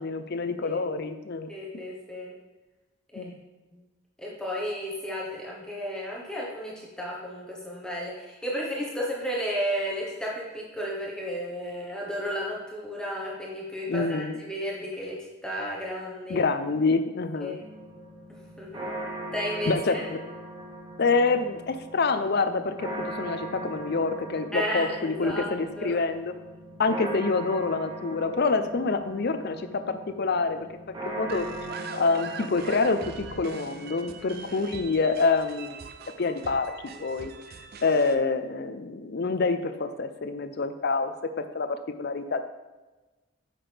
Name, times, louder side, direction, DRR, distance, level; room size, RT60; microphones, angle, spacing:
voice 1, 0.0-1.5 3.2-3.3 13.9-14.4 16.3-17.6 19.7-20.2 21.0-26.3 26.8-30.7 31.0-31.5 31.9-35.8 36.2-36.7 37.0-37.3 37.8-41.1 41.4-42.4, left 4 dB, 50° left, 9 dB, 0.5 m, -27 dB
voice 2, 1.5-2.4 3.1-3.3 3.7-3.8 4.2-16.4 17.4-17.7 18.6-18.9 19.3-20.0 24.5-25.5 25.8-26.0 34.2-34.7, equal, 5° left, -4 dB, 1.1 m, -33 dB
sound 1, 17.6-34.2, right 1 dB, 20° right, 1.0 m, -40 dB
sound 2, 31.3-38.2, right 5 dB, 45° right, 0.4 m, -42 dB
8.9 x 6.0 x 3.4 m, 1.2 s
head